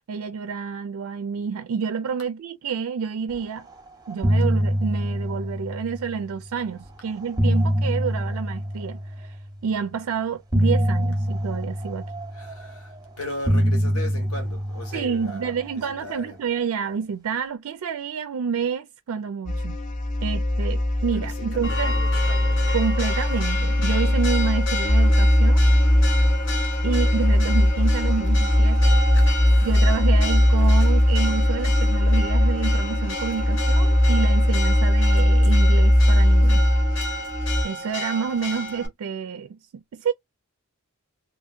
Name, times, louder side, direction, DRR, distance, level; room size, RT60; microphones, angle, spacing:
voice 1, 0.1-3.7 4.1-12.0 14.9-19.8 20.2-22.0 22.7-25.6 26.8-28.9 29.6-36.7 37.6-40.1, right 6 dB, 75° right, 0.4 m, -29 dB
sound 1, 3.6-3.8 4.1-6.4 7.1-9.5 10.5-13.0 13.4-16.0, equal, 15° right, 0.7 m, -25 dB
voice 2, 12.3-16.4 21.1-22.6, left 1 dB, 85° left, 1.3 m, -38 dB
sound 2, 19.5-37.6, left 1 dB, 35° left, 0.5 m, -19 dB
Church bell, 21.6-38.9, left 1 dB, 55° left, 0.9 m, -32 dB
2.8 x 2.5 x 2.4 m
head